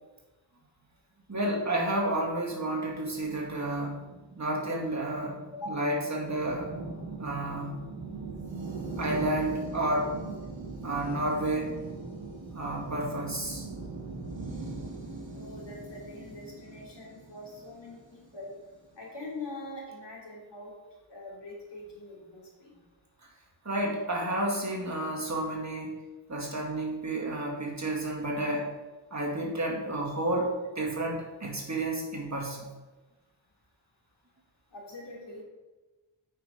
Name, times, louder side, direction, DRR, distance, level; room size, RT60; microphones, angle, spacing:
voice 1, 1.3-4.0 4.4-5.4 5.7-6.7 7.2-7.8 9.0-10.1 10.8-11.8 12.5-13.6 23.7-25.9 26.3-28.7 29.1-32.7, right 1 dB, 35° right, -2 dB, 2.0 m, -31 dB
sound 1, 3.1-18.6, right 3 dB, 75° right, 2.6 m, -41 dB
voice 2, 5.5-5.8 15.3-18.5 19.0-20.7 21.1-22.7 34.7-35.4, left 2 dB, 65° left, -4 dB, 2.9 m, -43 dB
8.8 x 5.3 x 5.0 m, 1.2 s
wide cardioid pair, 65°, 46 cm